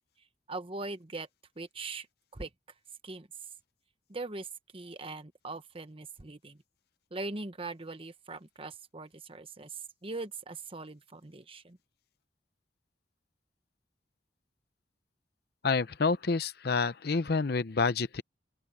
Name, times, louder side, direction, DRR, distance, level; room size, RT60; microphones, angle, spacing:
voice 1, 0.5-1.3 1.6-2.1 2.3-2.5 3.0-3.3 4.1-6.6 7.1-11.8, right 3 dB, 30° right, 1.2 m, -41 dB
voice 2, 15.6-18.2, left 4 dB, 60° left, 0.7 m, -28 dB
head